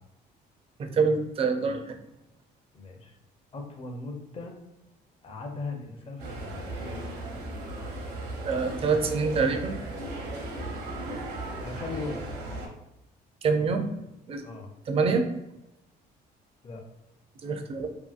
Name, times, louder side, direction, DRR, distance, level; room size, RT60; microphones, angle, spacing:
voice 1, 0.9-1.9 8.4-9.8 13.4-13.9 14.3-14.4 14.9-15.3 17.4-17.9, right 4 dB, 35° right, 5 dB, 0.4 m, -25 dB
voice 2, 2.7-3.1 3.5-4.5 5.2-6.6 11.6-12.3 14.4-14.7 16.6-16.8, left 3 dB, 35° left, 3 dB, 0.5 m, -38 dB
sound 1, 6.2-12.7, right 2 dB, 75° right, 0.8 m, -36 dB
2.7 x 2.6 x 2.4 m, 0.90 s
cardioid pair, 110°, 17 cm